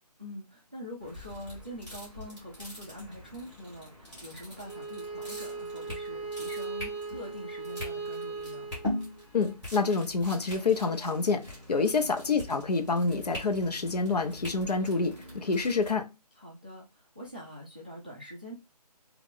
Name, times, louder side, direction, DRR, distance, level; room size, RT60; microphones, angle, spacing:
voice 1, 0.2-8.7 11.8-12.2 16.4-18.6, equal, 15° right, 0.4 m, -44 dB
sound 1, 1.0-15.9, left 1 dB, 10° left, 1.2 m, -43 dB
Bowed string instrument, 4.6-9.5, right 4 dB, 50° left, 1.6 m, -38 dB
voice 2, 9.3-16.1, left 4 dB, 75° left, 0.8 m, -27 dB
3.0 x 2.4 x 3.6 m
figure-of-eight pair, 165°, 21 cm